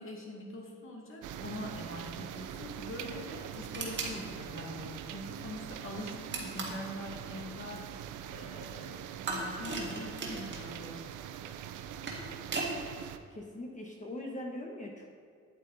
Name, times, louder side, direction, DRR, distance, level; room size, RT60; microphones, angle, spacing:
voice 1, 0.0-11.0, left 1 dB, 45° left, -1 dB, 2.2 m, -43 dB
sound 1, 1.2-13.2, right 10 dB, 85° right, 0.6 m, -43 dB
sound 2, 3.7-4.2 6.3-6.9 9.3-10.7 11.8-12.8, right 3 dB, 40° right, 1.8 m, -37 dB
voice 2, 13.3-15.1, left 1 dB, 25° left, 0 dB, 1.3 m, -41 dB
9.1 x 8.2 x 4.1 m, 2.1 s
cardioid pair, 90°, 30 cm